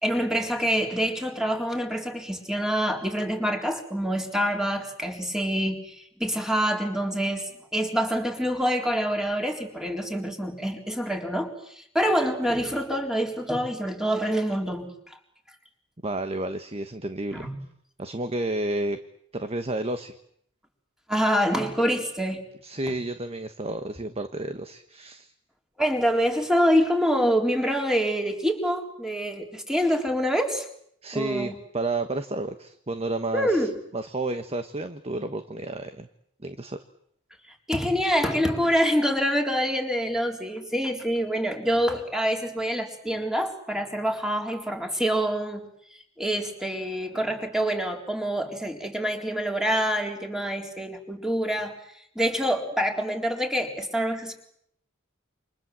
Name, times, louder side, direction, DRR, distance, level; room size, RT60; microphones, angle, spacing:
voice 1, 0.0-15.2 17.3-17.5 21.1-22.4 25.8-30.7 31.1-31.5 33.3-33.8 37.7-51.8 52.2-54.3, equal, ahead, 3 dB, 4.0 m, -26 dB
voice 2, 16.0-17.5 18.0-19.0 19.3-20.1 22.6-25.3 31.0-36.1 36.4-36.8, right 2 dB, 30° right, 9 dB, 1.3 m, -31 dB
29.0 x 26.5 x 7.6 m, 0.70 s
head